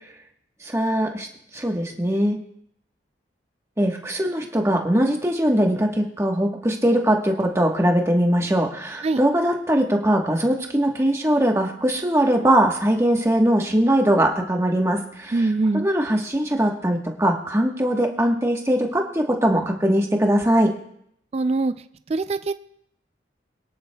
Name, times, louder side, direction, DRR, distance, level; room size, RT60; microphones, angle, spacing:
voice 1, 0.6-1.3 1.5-2.4 3.8-15.4 15.7-20.7, right 1 dB, 15° right, 1 dB, 1.2 m, -21 dB
voice 2, 15.3-15.9 21.3-21.7 22.1-22.5, right 3 dB, 35° right, 11 dB, 0.3 m, -22 dB
22.5 x 10.0 x 2.3 m, 0.72 s
head